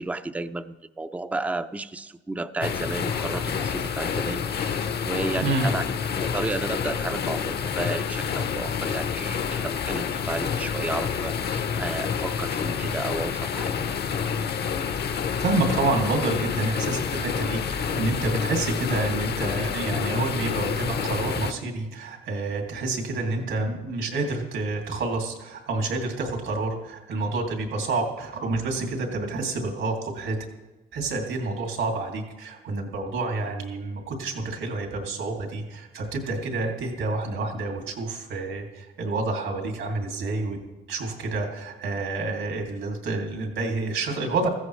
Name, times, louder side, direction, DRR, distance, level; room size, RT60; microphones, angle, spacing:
voice 1, 0.0-5.8 6.2-13.7, right 2 dB, 5° right, 11 dB, 0.5 m, -32 dB
sound 1, 2.6-21.5, left 7 dB, 55° left, 0.8 m, -28 dB
voice 2, 5.4-5.7 15.0-30.4 30.9-40.6 40.9-44.5, right 3 dB, 75° right, 2 dB, 2.6 m, -28 dB
16.0 x 14.5 x 3.2 m, 1.1 s
cardioid pair, 90°, 20 cm